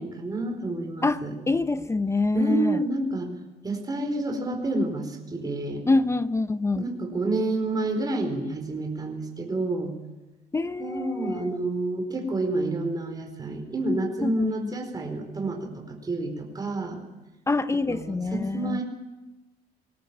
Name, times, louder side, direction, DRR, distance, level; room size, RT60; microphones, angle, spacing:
voice 1, 0.0-1.3 2.3-3.3 3.6-5.8 6.7-10.0 10.8-17.0 17.9-18.8, right 2 dB, 25° right, 3 dB, 4.4 m, -29 dB
voice 2, 1.0-2.8 5.9-6.8 10.5-11.6 14.2-14.7 17.5-18.8, left 3 dB, 15° left, 13 dB, 0.7 m, -26 dB
21.0 x 18.0 x 8.8 m, 1.1 s
cardioid pair, 110°, 17 cm